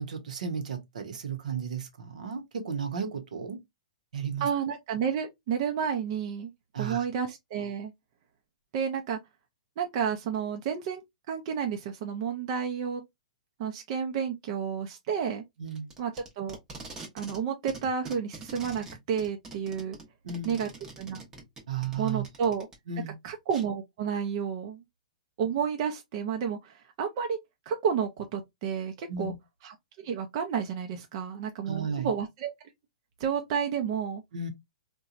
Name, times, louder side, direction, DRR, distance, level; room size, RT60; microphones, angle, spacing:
voice 1, 0.0-3.6 4.1-4.5 6.7-7.0 15.6-15.9 20.2-20.6 21.7-22.2 22.9-23.1 29.1-29.4 31.7-32.1 34.3-34.5, right 6 dB, 75° right, 0.8 m, -34 dB
voice 2, 4.4-6.5 6.8-7.9 8.7-9.2 9.8-11.0 11.3-13.0 13.6-15.4 16.0-16.6 17.1-20.0 20.4-20.7 21.0-21.2 22.0-22.7 23.2-24.8 25.4-27.4 27.7-29.3 29.6-32.5 33.2-34.2, right 7 dB, 45° right, 0.5 m, -31 dB
Packing tape duct tape, 15.7-17.4 17.7-22.7 23.5-23.6, right 3 dB, 15° right, 0.8 m, -44 dB
2.8 x 2.2 x 2.4 m
hypercardioid pair, 145°, 4 cm